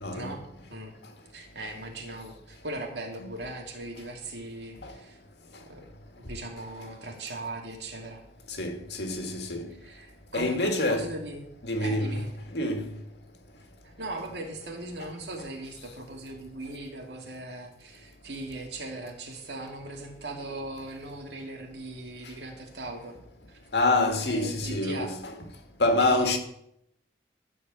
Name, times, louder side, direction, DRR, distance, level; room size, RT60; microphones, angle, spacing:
voice 1, 0.0-0.4 4.8-4.9 8.5-9.7 10.3-11.1 11.6-12.2 12.5-12.9 23.7-25.3 25.8-26.4, left 2 dB, 75° left, 1.8 m, -26 dB
voice 2, 1.3-5.2 5.7-5.9 6.2-8.2 9.8-11.5 11.8-12.3 13.8-23.2 23.5-23.6 24.2-25.1 26.0-26.4, right 2 dB, 75° right, 2.4 m, -39 dB
13.5 x 4.8 x 8.0 m
head